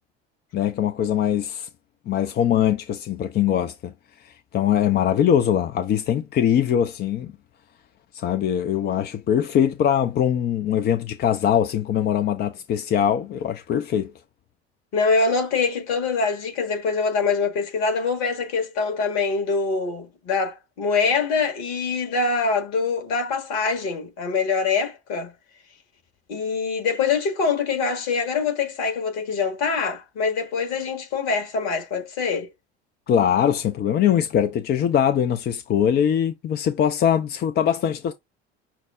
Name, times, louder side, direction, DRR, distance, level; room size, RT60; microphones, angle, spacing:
voice 1, 0.5-1.7 2.1-3.9 4.2-7.3 8.1-14.1 33.1-38.1, left 9 dB, 30° left, 0.5 m, -22 dB
voice 2, 14.9-25.3 26.3-32.5, left 4 dB, 55° left, 1.6 m, -24 dB
5.9 x 2.0 x 3.5 m
figure-of-eight pair, 65°, 33 cm